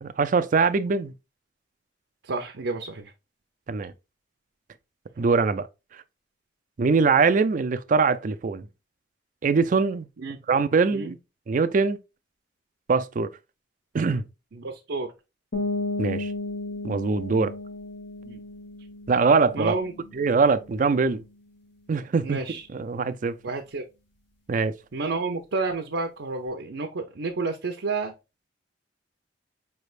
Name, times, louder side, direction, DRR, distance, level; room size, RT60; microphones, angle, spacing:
voice 1, 0.0-1.1 3.7-3.9 5.2-5.7 6.8-8.6 9.4-10.1 10.5-11.1 11.5-12.0 12.9-13.3 13.9-14.2 16.0-16.3 16.8-17.5 19.1-19.7 20.2-21.2 21.9-22.4 22.7-23.4 24.5-24.7, right 4 dB, 45° right, 0.4 m, -22 dB
voice 2, 2.2-3.1 10.2-10.4 10.9-11.2 14.5-15.1 18.2-18.4 19.5-19.9 22.2-22.7 23.4-23.8 24.9-28.1, right 3 dB, 75° right, 0.7 m, -30 dB
sound 1, 15.5-21.1, left 2 dB, 70° left, 1.4 m, -34 dB
5.1 x 3.3 x 2.4 m
head